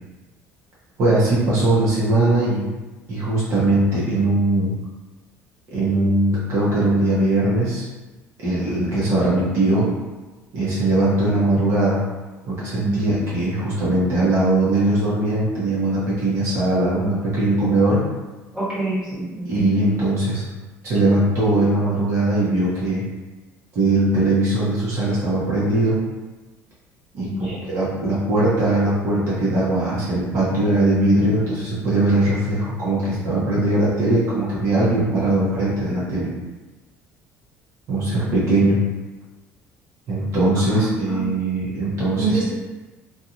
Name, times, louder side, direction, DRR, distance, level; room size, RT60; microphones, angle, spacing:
voice 1, 1.0-2.7 3.1-4.7 5.7-7.8 8.4-9.9 10.5-12.0 12.4-18.0 19.5-20.4 20.8-23.0 23.7-26.0 27.1-36.3 37.9-38.8 40.1-42.4, right 2 dB, 50° right, -9 dB, 1.0 m, -20 dB
voice 2, 18.5-19.7 27.2-27.6 40.7-41.2 42.2-42.5, right 3 dB, 15° right, -10 dB, 1.3 m, -26 dB
2.9 x 2.5 x 2.5 m, 1.2 s
cardioid pair, 135°, 6 cm